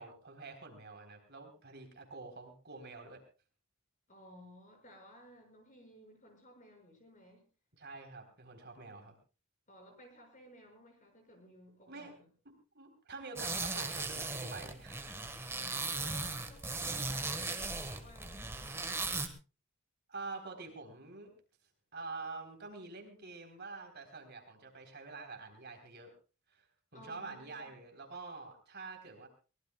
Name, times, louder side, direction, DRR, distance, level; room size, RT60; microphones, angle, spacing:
voice 1, 0.0-3.2 7.8-9.2 11.9-12.1 12.7-15.3 20.1-21.3 21.9-26.1 26.5-26.7 26.9-29.3, right 3 dB, 50° right, 4 dB, 3.8 m, -47 dB
voice 2, 4.1-7.4 9.7-12.3 15.5-19.3 26.9-27.8, equal, 35° left, 3 dB, 6.3 m, -57 dB
sound 1, 13.4-19.3, right 3 dB, 10° right, 1.5 m, -37 dB
23.5 x 19.5 x 2.3 m, 0.33 s
head